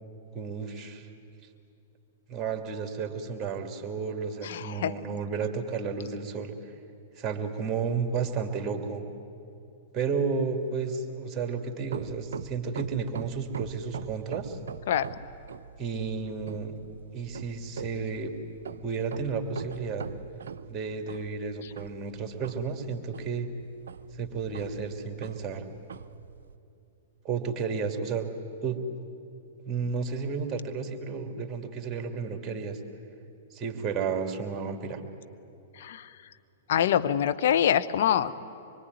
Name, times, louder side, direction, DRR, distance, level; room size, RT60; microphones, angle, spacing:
voice 1, 0.3-1.1 2.3-6.5 7.2-9.0 9.9-14.6 15.8-16.8 17.1-18.3 18.8-20.1 20.7-23.5 24.1-25.7 27.2-28.3 28.6-28.8 29.6-32.8 33.5-35.0, right 5 dB, 20° right, 5 dB, 2.9 m, -32 dB
voice 2, 4.4-4.9 14.9-15.1 35.8-36.1 36.7-38.3, left 9 dB, 60° left, 10 dB, 0.9 m, -25 dB
sound 1, 11.8-26.6, right 7 dB, 70° right, 0.6 m, -42 dB
25.0 x 23.5 x 9.6 m, 2.6 s
figure-of-eight pair, 105°, 0 cm